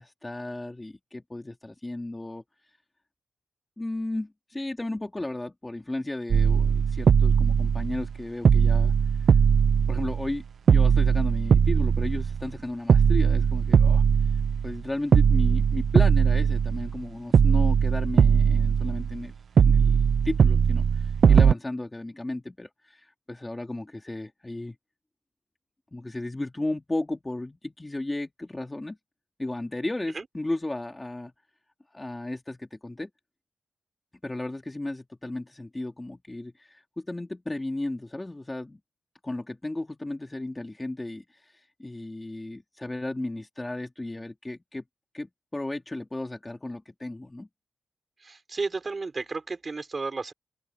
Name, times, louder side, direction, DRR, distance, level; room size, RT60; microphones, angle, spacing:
voice 1, 0.0-2.4 3.8-8.9 9.9-14.0 14.6-19.3 19.6-20.0 20.2-24.8 25.9-29.0 29.4-31.3 31.9-33.1 34.2-38.8 39.2-44.8 45.1-47.5, left 2 dB, 15° left, 2.6 m, -34 dB
sound 1, 6.3-8.2 8.5-10.4 10.7-12.5 12.9-14.8 15.1-17.0 17.3-19.2 19.6-21.5, right 7 dB, 65° right, 0.5 m, -20 dB
voice 2, 48.2-50.3, right 4 dB, 35° right, 6.1 m, -33 dB
open air
wide cardioid pair, 115°, 0 cm